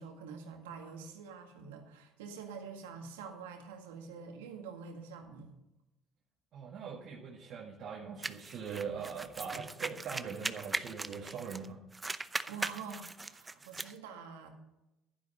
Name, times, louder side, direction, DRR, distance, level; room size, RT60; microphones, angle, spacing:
voice 1, 0.0-5.5 12.5-14.5, right 5 dB, 90° right, 4 dB, 1.9 m, -46 dB
voice 2, 6.5-11.8, right 6 dB, 60° right, -2 dB, 1.9 m, -42 dB
sound 1, 8.2-11.7 11.9-13.9, right 3 dB, 20° right, 0.7 m, -39 dB
11.5 x 10.5 x 5.4 m, 0.94 s
hypercardioid pair, 70°, 0 cm